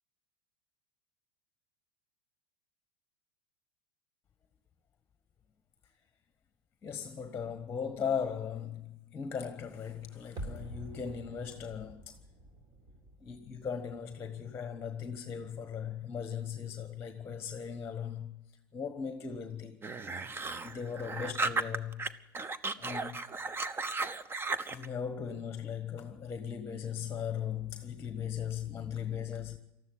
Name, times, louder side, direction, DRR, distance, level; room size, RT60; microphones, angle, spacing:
voice 1, 6.8-12.2 13.2-18.3 18.7-19.8 20.6-22.1 22.7-23.2 24.7-29.6, left 7 dB, 20° left, 1.4 m, -38 dB
sound 1, 10.4-15.3 15.6-15.7, right 1 dB, 40° right, 4.2 m, -48 dB
sound 2, 19.8-22.1 22.3-24.9, right 3 dB, 20° right, 1.0 m, -35 dB
19.5 x 14.0 x 9.6 m
hypercardioid pair, 100°, 12 cm